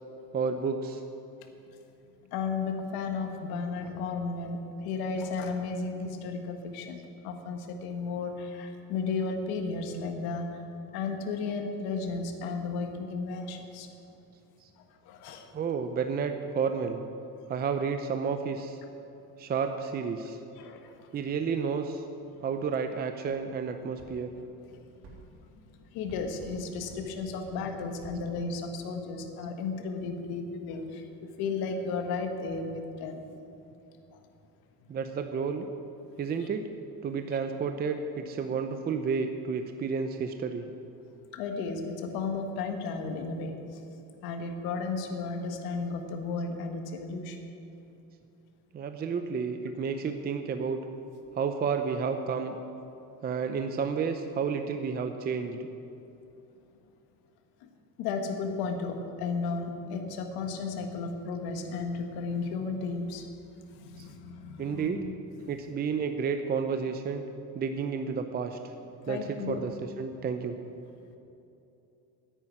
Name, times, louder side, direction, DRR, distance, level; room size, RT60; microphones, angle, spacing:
voice 1, 0.3-1.0 15.5-17.0 17.5-18.8 19.4-20.4 21.1-22.0 22.4-24.3 34.9-35.6 36.2-36.7 37.0-40.7 48.7-50.8 51.3-52.6 53.2-55.6 64.6-65.0 65.5-67.2 67.5-68.6 69.1-70.6, right 5 dB, 25° right, 7 dB, 0.6 m, -31 dB
voice 2, 2.3-10.7 10.9-13.9 15.0-15.5 20.5-21.1 24.3-24.4 24.7-24.8 25.3-33.2 34.1-34.2 36.2-36.5 41.3-43.8 44.2-47.5 57.6-57.7 58.0-63.3 63.5-65.1 69.1-69.6, left 4 dB, 80° left, 4 dB, 1.6 m, -34 dB
sound 1, 24.0-24.1 25.0-25.2 26.1-26.6 26.9-27.0 27.4-27.6 28.0-28.2, right 3 dB, 80° right, 3.6 m, -48 dB
10.5 x 9.0 x 9.9 m, 2.8 s
cardioid pair, 150°, 37 cm